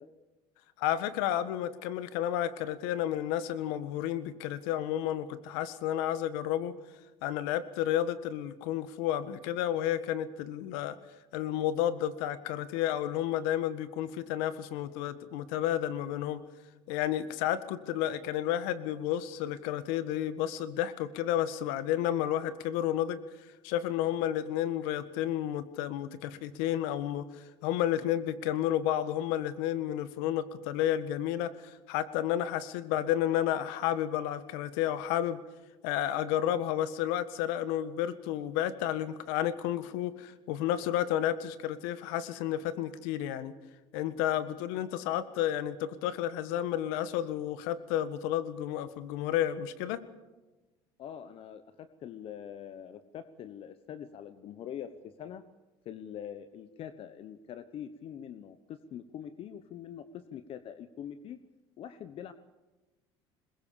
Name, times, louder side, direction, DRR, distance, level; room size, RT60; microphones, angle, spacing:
voice 1, 0.8-6.8 7.2-11.0 11.3-16.4 16.9-23.2 23.6-35.4 35.8-43.5 43.9-50.0, left 11 dB, 80° left, 13 dB, 1.6 m, -31 dB
voice 2, 51.0-55.4 55.8-61.4 61.8-62.3, left 9 dB, 50° left, 12 dB, 1.1 m, -44 dB
21.5 x 21.5 x 7.1 m, 1.1 s
supercardioid pair, 105°, 12 cm